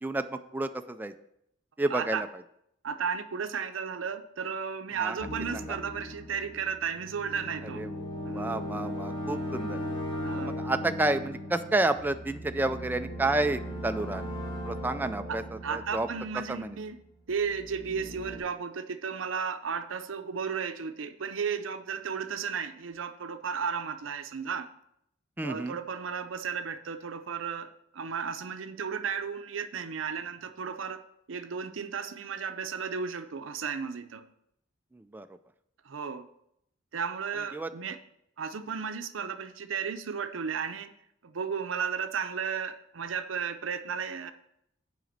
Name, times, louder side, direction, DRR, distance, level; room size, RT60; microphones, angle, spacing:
voice 1, 0.0-1.1 1.8-2.3 5.0-5.1 7.8-7.9 8.3-9.8 10.4-14.2 14.6-15.4 15.7-16.1 16.5-16.8 25.4-25.8 35.1-35.3 37.5-37.7, right 2 dB, 10° right, 8 dB, 0.3 m, -30 dB
voice 2, 1.9-2.2 2.8-7.8 8.3-8.5 10.2-10.6 15.3-15.4 15.6-17.0 17.3-24.7 25.4-31.0 31.3-34.3 35.8-36.3 36.9-38.0 38.4-40.9 41.2-44.3, right 6 dB, 85° right, 9 dB, 0.6 m, -34 dB
sound 1, 5.2-16.9 17.3-18.4, equal, 30° left, 2.6 m, -38 dB
7.7 x 5.0 x 6.6 m, 0.77 s
head